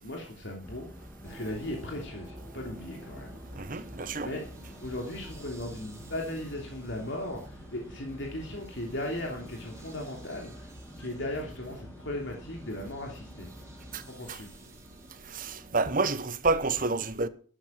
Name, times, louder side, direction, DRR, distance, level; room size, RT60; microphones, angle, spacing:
voice 1, 0.0-0.9 1.2-3.4 3.7-3.8 4.2-4.4 4.8-10.7 11.0-13.5 14.1-14.5, left 1 dB, 60° left, 3.2 m, -37 dB
sound 1, 0.6-14.1, equal, 10° left, 2.3 m, -48 dB
sound 2, 1.2-16.1, right 1 dB, 15° right, 4.3 m, -51 dB
voice 2, 3.6-4.3 13.9-14.0 14.3-14.4 15.3-17.3, right 3 dB, 40° right, 1.1 m, -29 dB
12.5 x 12.5 x 5.9 m
head